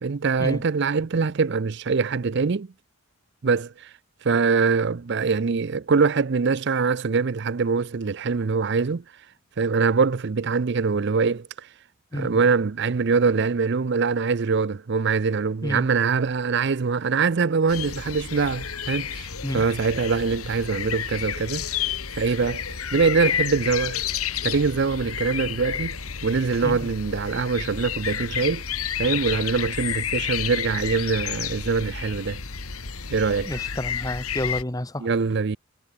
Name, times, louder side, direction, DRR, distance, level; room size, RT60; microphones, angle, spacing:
voice 1, 0.0-2.7 3.4-3.9 4.2-9.0 9.6-11.5 12.1-19.3 19.5-21.7 22.1-22.6 22.9-24.0 24.4-28.6 29.0-32.4 33.1-33.5 35.0-35.6, right 5 dB, 50° right, 0.5 m, -23 dB
sound 1, 17.7-34.6, left 8 dB, 80° left, 2.3 m, -31 dB
voice 2, 33.4-35.1, left 1 dB, 15° left, 1.3 m, -30 dB
head